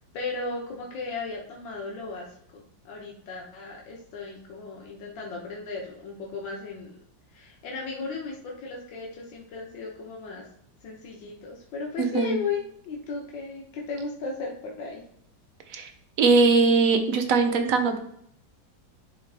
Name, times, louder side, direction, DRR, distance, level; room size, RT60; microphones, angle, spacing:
voice 1, 0.0-2.3 2.5-6.9 7.3-10.4 10.8-15.0, left 4 dB, 80° left, -1 dB, 1.9 m, -35 dB
voice 2, 12.0-12.3 15.7-15.9 16.2-18.0, right 4 dB, 55° right, 6 dB, 1.1 m, -21 dB
11.0 x 3.7 x 3.4 m, 0.71 s
omnidirectional pair, 2.0 m